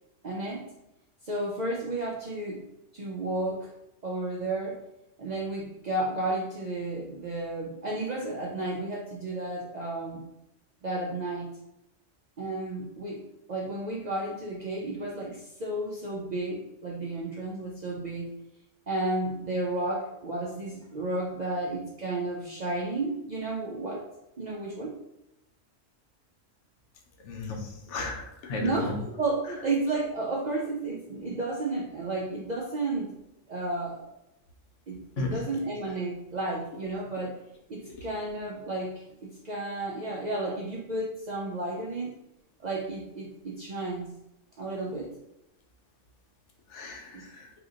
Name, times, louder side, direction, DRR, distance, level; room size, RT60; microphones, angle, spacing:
voice 1, 0.2-0.7 1.2-2.6 2.9-3.7 4.0-4.8 5.2-10.3 10.8-11.5 12.4-18.3 18.9-24.1 24.4-25.0 28.6-33.1 33.5-34.0 34.9-37.4 37.7-42.1 42.6-44.1 44.6-45.2 47.1-47.3, right 2 dB, 55° right, -3 dB, 0.5 m, -32 dB
voice 2, 27.2-28.9 35.2-35.4 46.7-47.5, left 2 dB, 75° left, 1 dB, 1.0 m, -34 dB
2.8 x 2.5 x 3.7 m, 0.86 s
omnidirectional pair, 1.3 m